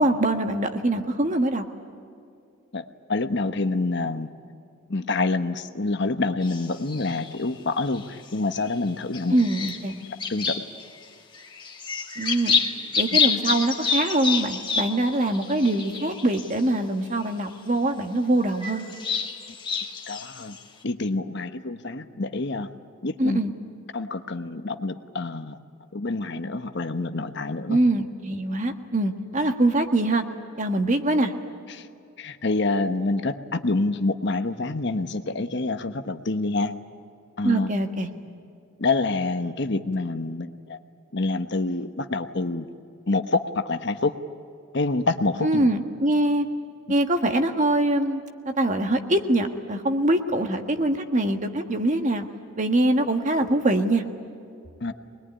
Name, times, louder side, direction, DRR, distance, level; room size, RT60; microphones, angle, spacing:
voice 1, 0.0-1.6 9.3-10.0 12.2-12.6 12.9-18.8 23.2-23.5 27.7-30.2 30.6-31.3 37.4-38.1 45.4-46.4 46.9-52.3 52.6-54.0, right 1 dB, 35° right, 5 dB, 1.6 m, -23 dB
voice 2, 3.1-4.3 4.9-9.4 10.3-10.6 20.1-20.6 20.8-22.7 23.0-23.4 23.9-25.6 25.9-27.8 31.7-31.8 32.2-36.7 37.4-37.7 38.8-40.8 41.1-42.7 43.1-44.1 44.7-45.7 54.8-54.9, left 3 dB, 55° left, 8 dB, 1.1 m, -27 dB
sound 1, 6.4-7.4 7.9-8.7 9.1-11.0 11.3-16.6 17.2-17.3 18.4-20.6, left 5 dB, 25° left, 2.0 m, -28 dB
24.5 x 21.0 x 9.9 m, 2.4 s
head